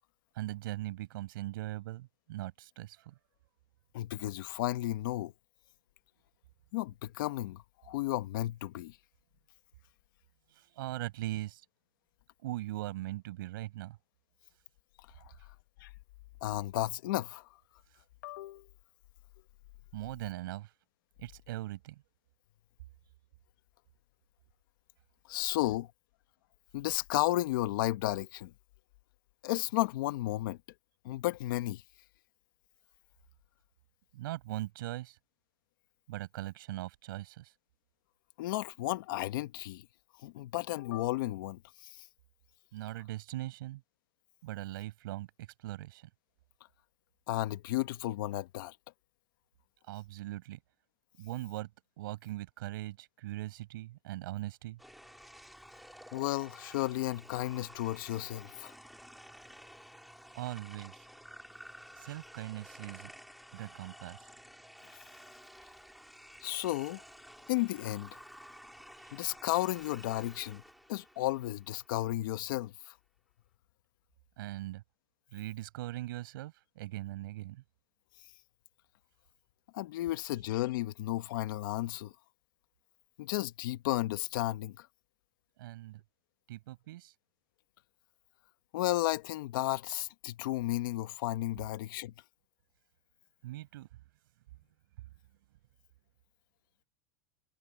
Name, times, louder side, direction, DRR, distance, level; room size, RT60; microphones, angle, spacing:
voice 1, 0.3-3.1 10.5-11.6 12.4-14.0 19.9-20.7 21.2-22.0 34.1-35.2 36.1-37.5 42.7-43.8 44.4-46.1 49.9-50.6 51.2-51.7 52.0-54.8 60.3-61.0 62.0-63.1 63.5-64.3 69.0-69.1 74.4-74.8 75.3-77.6 85.6-86.0 86.5-87.1 93.4-93.9, right 16 dB, 85° right, 5.9 m, -40 dB
voice 2, 3.9-5.3 6.7-9.0 15.8-15.9 16.4-17.5 18.2-18.7 25.3-25.9 26.7-28.5 29.4-30.6 31.0-31.8 38.4-39.9 40.2-42.0 47.3-48.7 56.1-58.7 66.4-67.0 67.5-68.2 69.1-70.6 70.9-72.9 79.7-82.1 83.2-84.9 88.7-92.1, left 16 dB, 75° left, 1.1 m, -33 dB
sound 1, 54.8-72.1, equal, ahead, 3.9 m, -53 dB
supercardioid pair, 160°, 11 cm